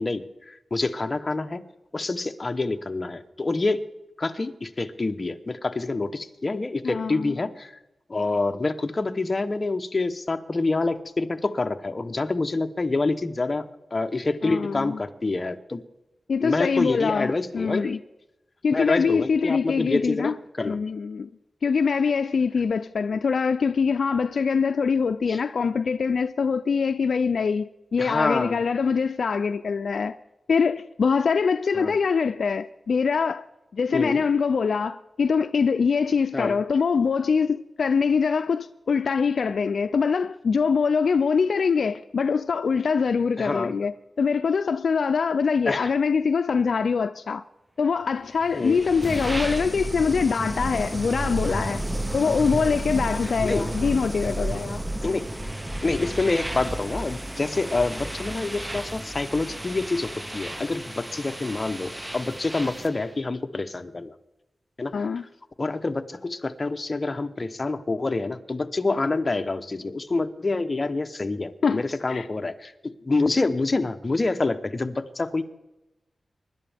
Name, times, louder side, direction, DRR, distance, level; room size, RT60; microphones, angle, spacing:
voice 1, 0.0-1.6 1.9-3.8 4.2-7.7 8.1-15.8 16.4-18.0 18.7-20.8 25.3-25.4 28.0-28.6 31.7-32.0 33.9-34.2 36.3-36.6 43.4-43.7 45.6-45.9 48.5-48.8 53.2-53.7 55.0-55.4 55.8-64.1 64.8-65.1 65.6-72.7 73.0-75.4, left 3 dB, 35° left, 0.9 m, -27 dB
voice 2, 6.8-7.4 14.4-15.0 16.3-18.0 18.6-20.3 20.7-21.3 21.6-30.2 30.5-33.4 33.7-43.9 44.2-47.4 47.8-51.9 52.1-54.8 64.9-65.2 71.6-72.3, left 5 dB, 75° left, 0.4 m, -24 dB
sound 1, 48.4-63.0, right 1 dB, 15° right, 0.8 m, -32 dB
24.5 x 11.5 x 3.5 m
wide cardioid pair, 90°, 0 cm